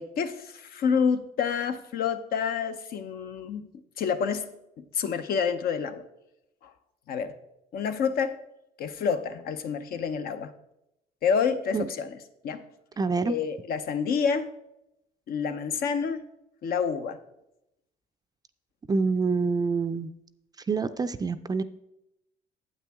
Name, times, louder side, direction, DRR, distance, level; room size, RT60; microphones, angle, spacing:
voice 1, 0.0-3.7 4.0-4.5 4.8-6.0 6.6-6.7 7.1-7.3 7.7-8.4 8.8-10.5 11.2-12.2 12.4-12.6 13.2-14.5 15.3-16.3 16.6-17.2, left 6 dB, 65° left, 10 dB, 0.8 m, -28 dB
voice 2, 13.0-13.4 18.9-20.1 20.7-21.6, right 4 dB, 25° right, 12 dB, 0.4 m, -26 dB
8.7 x 8.4 x 3.5 m, 0.85 s
cardioid pair, 110°, 17 cm